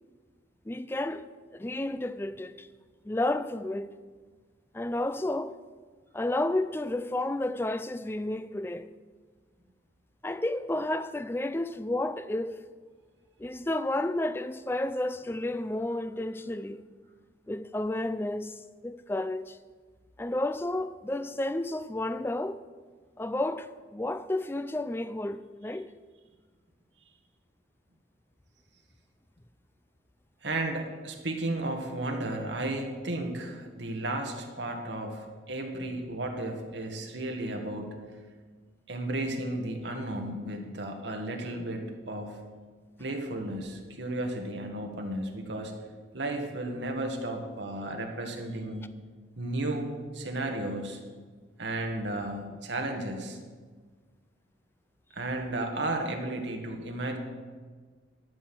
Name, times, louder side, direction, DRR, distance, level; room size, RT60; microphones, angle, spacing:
voice 1, 0.7-2.7 3.0-3.9 4.7-5.6 6.1-8.9 10.2-12.6 13.4-16.9 17.5-19.6 20.2-22.6 23.2-25.9, left 1 dB, 10° left, 0.3 m, -31 dB
voice 2, 30.4-38.0 38.9-42.4 43.0-45.7 46.1-48.9 49.4-51.0 51.6-53.4 55.1-57.2, right 1 dB, 70° right, 1.7 m, -34 dB
12.5 x 6.2 x 7.7 m
head